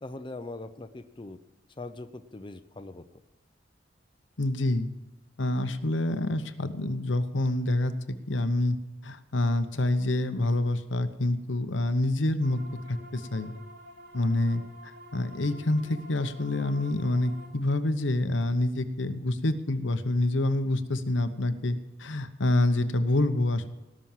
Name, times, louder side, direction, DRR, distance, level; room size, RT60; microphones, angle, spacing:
voice 1, 0.0-1.4 1.8-3.0, left 2 dB, 25° left, 8 dB, 0.6 m, -41 dB
voice 2, 4.4-4.9 5.4-8.8 9.0-12.6 12.9-13.5 14.1-23.7, left 1 dB, 80° left, 10 dB, 1.0 m, -27 dB
sound 1, 12.4-17.5, equal, 60° right, 3.5 m, -49 dB
18.5 x 6.2 x 7.3 m, 1.1 s
head